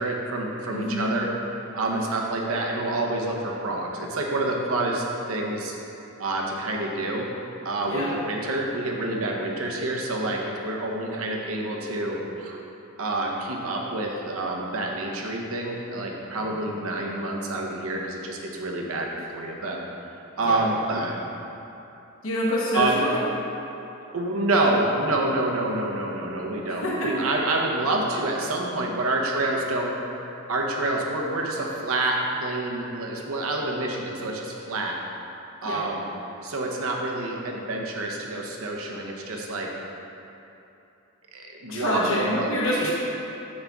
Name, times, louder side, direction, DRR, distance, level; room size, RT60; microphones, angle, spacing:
voice 1, 0.0-5.7 6.2-7.3 7.6-12.6 13.0-21.2 22.7-23.0 24.1-30.0 30.5-35.0 35.6-36.0 36.4-39.7 41.3-42.5 42.8-42.9, right 2 dB, 90° right, 0 dB, 0.9 m, -28 dB
voice 2, 0.7-1.2 1.9-2.1 7.9-8.1 20.4-20.6 22.2-23.2 26.7-27.1 35.6-35.8 41.7-42.9, left 1 dB, 75° left, -5 dB, 1.2 m, -26 dB
7.1 x 6.5 x 3.6 m, 2.9 s
head